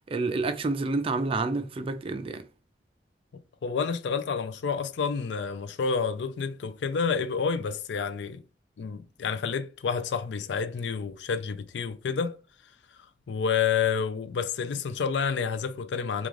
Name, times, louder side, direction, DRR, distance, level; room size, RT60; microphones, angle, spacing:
voice 1, 0.1-2.4, right 3 dB, 30° right, 0.4 m, -28 dB
voice 2, 3.6-8.4 8.8-12.4 13.3-16.3, left 6 dB, 75° left, 0.4 m, -29 dB
3.6 x 2.3 x 3.0 m
head